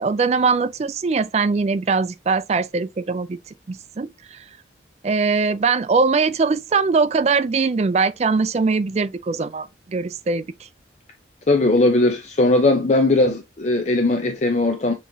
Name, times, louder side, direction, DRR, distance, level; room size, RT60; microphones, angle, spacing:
voice 1, 0.0-3.4 3.7-4.4 5.0-10.5, right 4 dB, 35° right, 0.3 m, -21 dB
voice 2, 11.5-14.9, left 2 dB, 35° left, 0.5 m, -18 dB
6.6 x 3.0 x 2.7 m
head